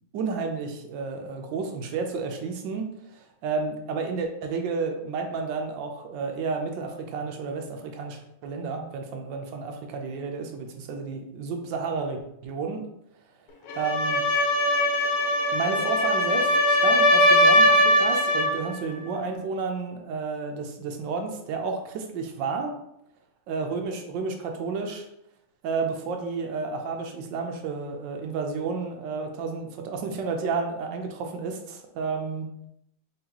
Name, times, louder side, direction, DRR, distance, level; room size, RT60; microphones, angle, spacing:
voice 1, 0.1-12.9 13.7-14.2 15.5-22.7 23.5-25.0 25.6-32.5, right 4 dB, 70° right, 4 dB, 1.2 m, -31 dB
sound 1, 13.7-18.6, left 1 dB, 85° left, 1.5 m, -20 dB
4.0 x 3.6 x 2.9 m, 0.79 s
omnidirectional pair, 2.3 m